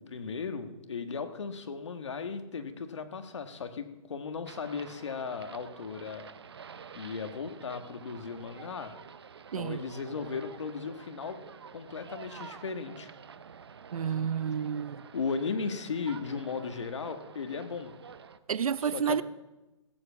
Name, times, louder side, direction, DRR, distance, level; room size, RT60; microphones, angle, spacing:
voice 1, 0.0-6.2 6.9-8.9 9.5-11.4 11.7-13.1 15.1-17.9 18.8-19.2, left 5 dB, 55° left, 1.4 m, -36 dB
sound 1, 4.5-18.4, right 6 dB, 50° right, 0.7 m, -49 dB
voice 2, 13.9-15.0 18.5-19.2, right 7 dB, 85° right, 0.5 m, -30 dB
17.0 x 7.8 x 7.2 m
hypercardioid pair, 175°, 18 cm